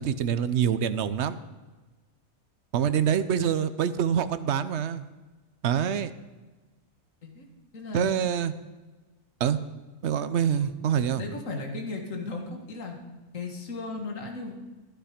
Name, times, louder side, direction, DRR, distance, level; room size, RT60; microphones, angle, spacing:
voice 1, 0.0-1.4 2.7-5.1 5.6-6.1 7.9-8.5 9.4-9.6 10.0-11.2, right 8 dB, 60° right, 12 dB, 0.8 m, -25 dB
voice 2, 7.7-8.2 10.5-10.7 11.2-13.0 13.3-14.5, left 3 dB, 60° left, 3 dB, 2.1 m, -36 dB
14.5 x 11.5 x 5.1 m, 1.3 s
omnidirectional pair, 1.6 m